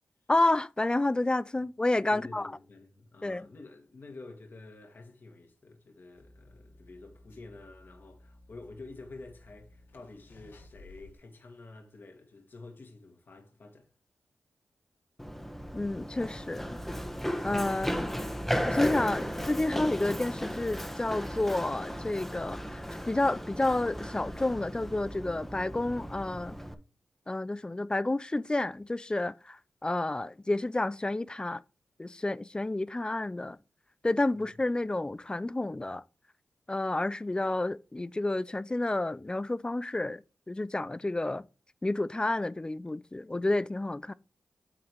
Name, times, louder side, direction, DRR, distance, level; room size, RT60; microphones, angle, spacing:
voice 1, 0.3-2.5 3.2-3.5 15.7-16.8 17.4-18.1 18.7-26.6 27.3-31.6 32.0-33.6 34.0-36.0 36.7-40.2 40.5-41.5 41.8-44.1, left 2 dB, 20° left, 0.5 m, -30 dB
voice 2, 2.1-13.9 19.2-19.3 34.3-34.4, left 3 dB, 60° left, 1.7 m, -49 dB
sound 1, 6.1-11.1, left 2 dB, 75° left, 1.8 m, -56 dB
Run, 15.2-26.7, equal, 5° left, 1.2 m, -35 dB
8.8 x 3.9 x 4.7 m
supercardioid pair, 40°, 4 cm